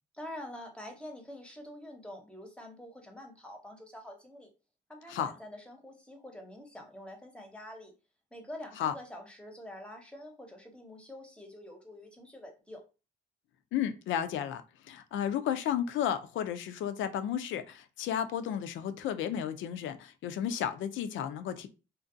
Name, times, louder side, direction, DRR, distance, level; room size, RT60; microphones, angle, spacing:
voice 1, 0.1-4.5 4.9-7.9 8.3-12.8, left 1 dB, 5° left, 0.7 m, -46 dB
voice 2, 13.7-21.7, left 9 dB, 75° left, 0.4 m, -33 dB
2.5 x 2.2 x 2.5 m
cardioid pair, 90°, 20 cm